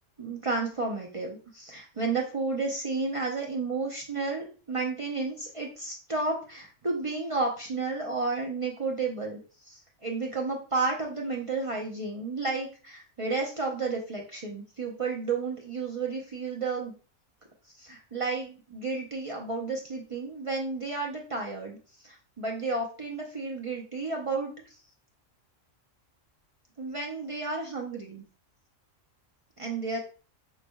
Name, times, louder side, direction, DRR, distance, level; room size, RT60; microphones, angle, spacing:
voice 1, 0.2-9.4 9.6-16.9 17.8-24.5 26.8-28.2 29.6-30.0, right 3 dB, 40° right, -1 dB, 0.4 m, -32 dB
5.1 x 3.2 x 2.2 m, 0.37 s
omnidirectional pair, 1.3 m